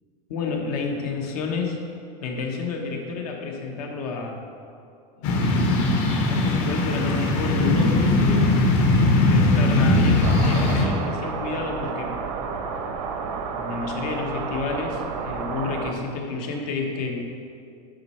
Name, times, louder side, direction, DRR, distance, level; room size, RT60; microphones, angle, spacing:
voice 1, 0.3-1.8 2.2-4.4 5.2-5.4 6.3-8.5 9.3-12.2 13.0-13.2 13.5-17.2, left 4 dB, 75° left, 2 dB, 1.2 m, -30 dB
sound 1, 5.2-10.8, left 2 dB, 55° left, 1.1 m, -20 dB
sound 2, 10.2-15.9, right 5 dB, 85° right, 0.8 m, -31 dB
7.7 x 5.4 x 4.3 m, 2.5 s
supercardioid pair, 155°, 20 cm